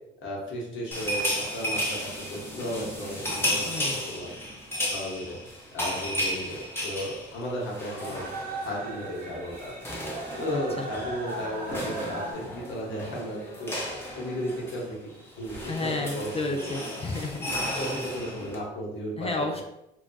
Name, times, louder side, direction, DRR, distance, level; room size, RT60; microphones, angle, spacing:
voice 1, 0.2-4.3 4.9-5.4 5.7-6.6 6.8-8.3 8.6-9.7 10.4-13.7 14.2-15.0 15.4-15.9 16.1-16.7 17.8-19.3, equal, 75° left, -3 dB, 1.1 m, -34 dB
sound 1, 0.9-8.8 9.0-9.2 9.5-18.6, equal, 10° left, 0.8 m, -34 dB
sound 2, 2.1-12.3, right 2 dB, 45° right, 0.8 m, -40 dB
voice 2, 3.6-4.0 10.5-10.9 15.7-17.8 19.2-19.6, left 2 dB, 30° left, 3 dB, 0.4 m, -32 dB
2.3 x 2.3 x 3.9 m, 0.87 s
cardioid pair, 90°, 20 cm